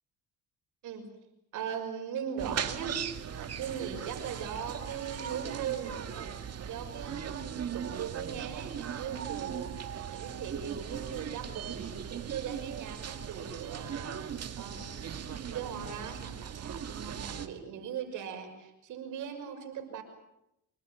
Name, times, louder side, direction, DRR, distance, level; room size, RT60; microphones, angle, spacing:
voice 1, 1.5-3.0 3.4-20.0, right 8 dB, 80° right, 5 dB, 6.0 m, -40 dB
sound 1, 2.4-17.5, right 8 dB, 55° right, 2.1 m, -39 dB
26.0 x 21.0 x 9.0 m, 0.84 s
cardioid pair, 90°, 30 cm